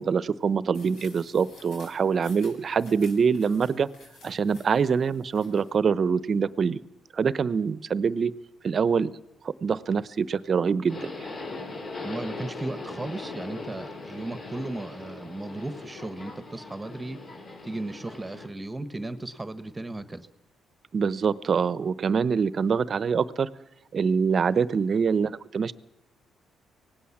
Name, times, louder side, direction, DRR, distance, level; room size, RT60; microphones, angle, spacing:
voice 1, 0.0-3.9 4.2-6.8 7.1-8.3 8.6-9.1 9.4-11.1 20.9-23.5 23.9-25.7, right 6 dB, 45° right, 17 dB, 0.9 m, -25 dB
sound 1, 0.7-5.7, left 3 dB, 80° left, 7.7 m, -53 dB
Subway metro underground, 10.9-18.5, left 3 dB, 50° left, 6.5 m, -39 dB
voice 2, 12.0-17.2 17.6-20.3, right 2 dB, 15° right, 12 dB, 1.4 m, -35 dB
25.0 x 18.0 x 7.3 m, 0.90 s
cardioid pair, 90°, 0 cm